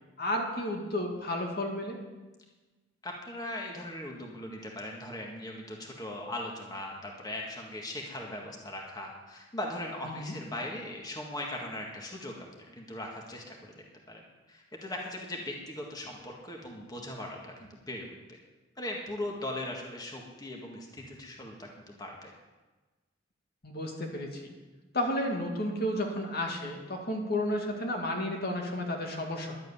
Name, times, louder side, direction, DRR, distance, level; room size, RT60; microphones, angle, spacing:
voice 1, 0.2-2.0 10.1-10.3 23.6-24.4 24.9-29.6, left 1 dB, 55° left, 1 dB, 2.1 m, -32 dB
voice 2, 3.0-13.7 14.1-14.2 14.5-18.4 18.8-22.3, left 1 dB, 20° left, -1 dB, 1.8 m, -39 dB
11.5 x 8.2 x 9.9 m, 1.2 s
head